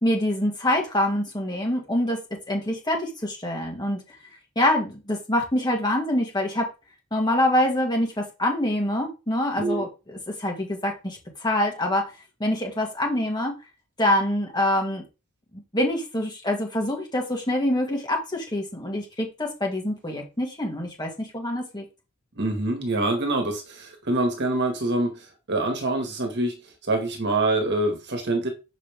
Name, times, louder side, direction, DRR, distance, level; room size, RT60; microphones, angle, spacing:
voice 1, 0.0-4.0 4.6-6.7 7.1-12.1 12.4-13.5 14.0-15.0 15.5-21.8, left 1 dB, 20° left, 1.9 m, -25 dB
voice 2, 22.3-26.5 26.8-28.5, right 2 dB, 50° right, 1.5 m, -25 dB
6.5 x 5.0 x 3.5 m
head